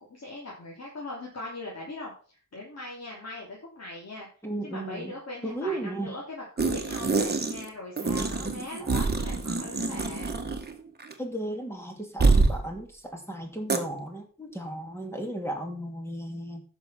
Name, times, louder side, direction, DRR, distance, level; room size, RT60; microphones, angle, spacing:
voice 1, 0.1-2.1 2.5-4.3 4.6-10.3, left 2 dB, 55° left, -4 dB, 3.3 m, -40 dB
voice 2, 4.4-5.1 5.4-6.2 8.8-9.0 11.2-16.6, right 1 dB, 10° left, 2 dB, 2.6 m, -35 dB
sound 1, 6.6-7.7 8.0-10.7 11.0-11.1 12.2-12.6 13.7-13.8, right 3 dB, 30° right, 1.6 m, -25 dB
10.5 x 6.3 x 5.8 m, 0.39 s
wide cardioid pair, 120°, 31 cm